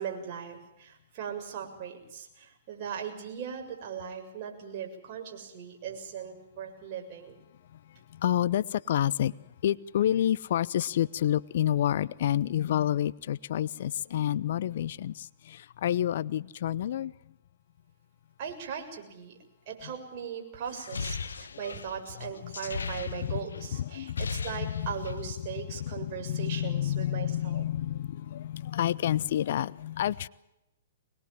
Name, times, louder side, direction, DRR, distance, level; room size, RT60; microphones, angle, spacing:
voice 1, 0.0-7.4 18.4-19.4 19.7-27.6, right 7 dB, 45° right, 7.0 m, -39 dB
voice 2, 8.1-9.3 9.6-17.1 21.6-21.7 22.4-22.5 22.8-24.9 25.4-25.5 25.7-30.3, left 11 dB, 60° left, 0.8 m, -29 dB
sound 1, 20.7-23.6 23.9-25.3, left 5 dB, 85° left, 1.4 m, -37 dB
24.5 x 21.5 x 7.4 m
hypercardioid pair, 125°, 0 cm